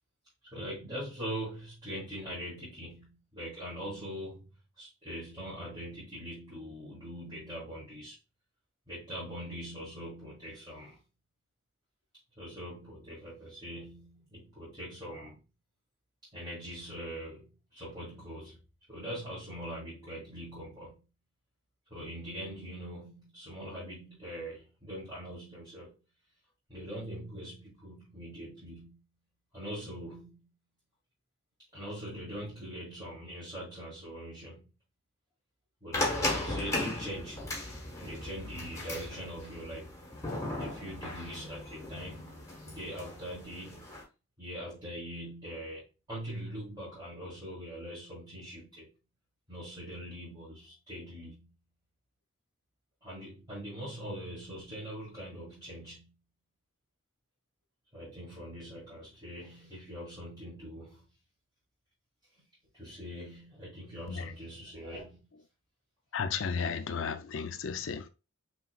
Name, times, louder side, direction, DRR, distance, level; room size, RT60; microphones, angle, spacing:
voice 1, 0.5-4.5 4.8-8.2 8.9-11.0 12.4-15.4 16.3-18.6 18.9-21.0 21.9-26.0 26.7-29.0 29.5-30.3 31.7-34.6 35.8-37.6 38.0-39.9 40.6-43.9 44.4-48.9 49.5-51.5 53.0-56.1 57.9-61.0 62.7-65.2, equal, 20° right, 2.1 m, -42 dB
sound 1, 35.9-44.0, left 1 dB, 15° left, 1.3 m, -37 dB
voice 2, 66.1-68.1, left 6 dB, 65° left, 0.5 m, -34 dB
5.7 x 3.0 x 2.3 m
head